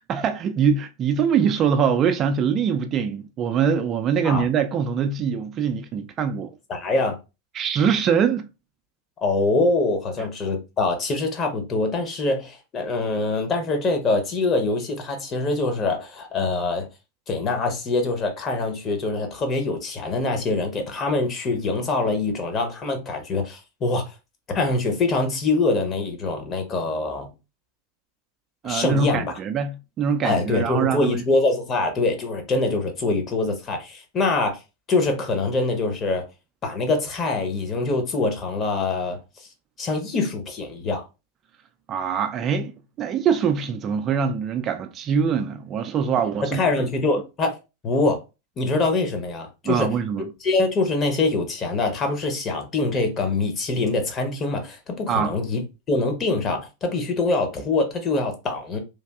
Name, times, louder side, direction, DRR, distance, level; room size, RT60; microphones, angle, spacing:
voice 1, 0.1-6.5 7.5-8.5 28.6-31.2 41.9-46.9 49.6-50.3 55.1-55.3, right 7 dB, 35° right, 0.3 m, -23 dB
voice 2, 6.7-7.2 9.2-16.9 17.3-24.0 24.5-27.3 28.6-29.3 30.2-34.6 34.9-36.3 36.6-39.5 39.8-41.0 46.4-47.6 47.8-48.2 48.6-49.9 50.4-55.6 55.9-58.8, left 3 dB, 30° left, 0.9 m, -24 dB
3.2 x 2.6 x 2.3 m
figure-of-eight pair, 90°, 0 cm